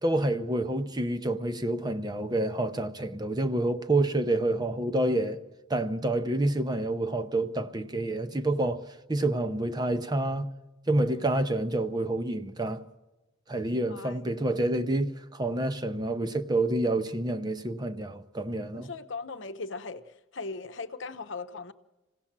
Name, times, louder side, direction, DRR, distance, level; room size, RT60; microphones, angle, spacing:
voice 1, 0.0-5.4 5.7-8.8 9.1-10.5 10.9-12.8 13.5-18.9, right 1 dB, 20° right, 0.7 m, -28 dB
voice 2, 13.9-14.4 18.7-21.7, left 4 dB, 65° left, 0.9 m, -39 dB
26.5 x 17.0 x 7.4 m
head